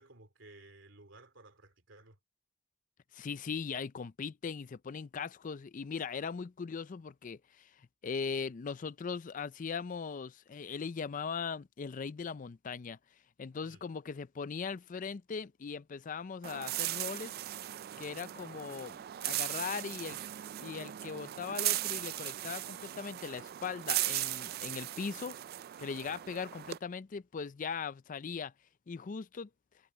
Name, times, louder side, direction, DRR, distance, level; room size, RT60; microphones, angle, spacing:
voice 1, 0.0-2.2 13.6-13.8 26.0-26.2, right 2 dB, 70° right, 3.3 m, -56 dB
voice 2, 3.1-7.7 8.0-13.0 13.4-17.3 18.0-20.2 20.6-25.4 25.8-28.5 28.9-29.5, left 5 dB, 40° left, 0.4 m, -39 dB
sound 1, 16.4-26.8, right 15 dB, 50° right, 0.3 m, -38 dB
head